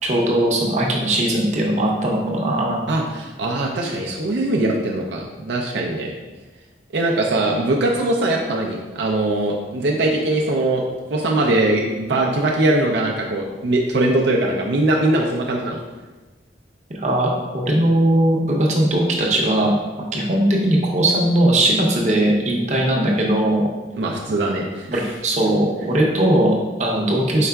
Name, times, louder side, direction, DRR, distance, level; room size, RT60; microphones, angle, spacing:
voice 1, 0.0-2.8 16.9-19.7 20.1-23.6 24.9-27.5, right 1 dB, 40° right, -2 dB, 0.7 m, -19 dB
voice 2, 2.9-6.1 6.9-10.8 11.1-15.8 23.9-25.0, right 2 dB, 75° right, 0 dB, 0.4 m, -21 dB
4.7 x 4.3 x 2.3 m, 1.2 s
head